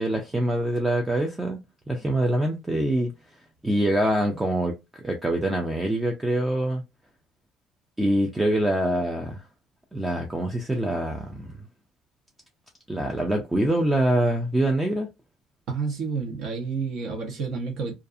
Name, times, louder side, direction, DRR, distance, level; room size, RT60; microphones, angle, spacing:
voice 1, 0.0-1.6 1.9-3.1 3.6-6.8 8.0-9.5 9.9-11.6 12.9-15.1, right 1 dB, 10° right, 0.4 m, -25 dB
voice 2, 15.7-17.9, right 5 dB, 55° right, 0.8 m, -30 dB
2.5 x 2.3 x 2.4 m
cardioid pair, 150°, 0 cm